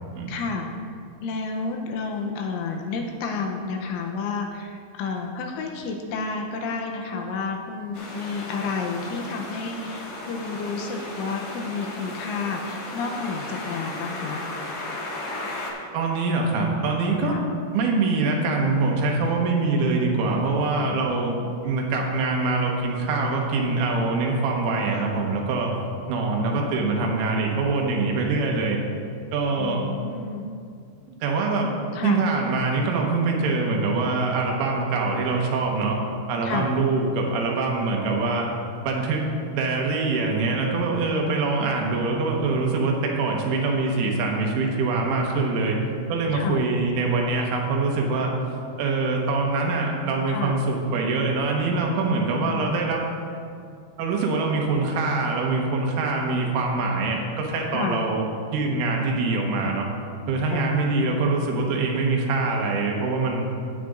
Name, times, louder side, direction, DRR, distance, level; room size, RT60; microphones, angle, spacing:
voice 1, 0.3-0.9 1.2-14.4 17.2-17.5 20.9-21.5 29.6-30.5 31.9-32.2 36.4-36.7 46.3-46.6 50.3-50.6 52.1-52.7 57.7-58.1 60.5-61.4, left 4 dB, 85° left, 2 dB, 2.9 m, -31 dB
sound 1, 7.9-15.7, left 2 dB, 60° left, 1.9 m, -35 dB
voice 2, 15.9-17.4 17.7-21.3 21.6-25.7 26.1-28.8 29.3-29.9 31.1-31.7 32.0-36.0 36.3-38.5 38.8-45.8 46.1-48.3 48.8-53.0 54.0-58.3 58.5-59.9 60.3-63.5, right 3 dB, 80° right, 0 dB, 3.7 m, -24 dB
15.5 x 9.8 x 2.5 m, 2.3 s
omnidirectional pair, 6.0 m